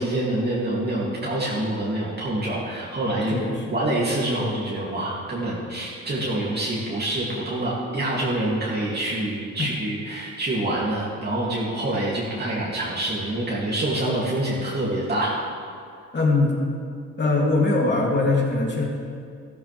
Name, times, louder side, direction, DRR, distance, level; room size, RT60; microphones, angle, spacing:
voice 1, 0.0-3.4 3.7-15.3, right 1 dB, 35° right, -7 dB, 2.8 m, -26 dB
voice 2, 3.3-3.7 9.6-9.7 16.1-16.6 17.2-18.9, left 3 dB, 35° left, -2 dB, 3.0 m, -21 dB
14.0 x 14.0 x 3.5 m, 2.3 s
cardioid pair, 90°, 30 cm